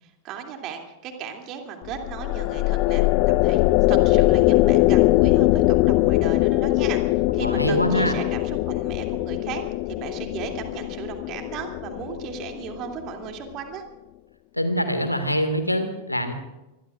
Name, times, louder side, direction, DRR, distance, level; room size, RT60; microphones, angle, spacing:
voice 1, 0.0-3.1 3.4-13.8, right 7 dB, 35° right, 3 dB, 2.7 m, -36 dB
sound 1, 1.9-13.3, left 19 dB, 45° left, 0.4 m, -21 dB
voice 2, 7.4-8.1 14.5-16.3, equal, 85° left, 8 dB, 1.9 m, -24 dB
25.5 x 21.5 x 2.5 m, 0.99 s
figure-of-eight pair, 90°, 0 cm